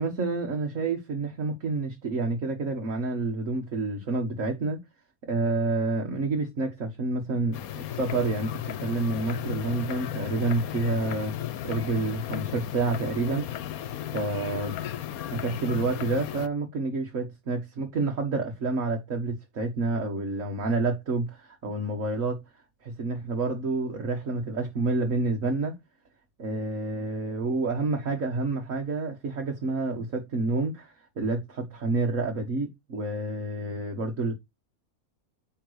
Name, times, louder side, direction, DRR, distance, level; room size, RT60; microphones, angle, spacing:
voice 1, 0.0-4.8 5.2-11.3 11.6-13.5 14.1-14.8 15.3-22.4 22.8-25.7 26.4-34.3, right 3 dB, 65° right, 1.9 m, -29 dB
sound 1, 7.5-16.5, left 11 dB, 80° left, 1.2 m, -35 dB
10.5 x 3.8 x 4.9 m
omnidirectional pair, 1.5 m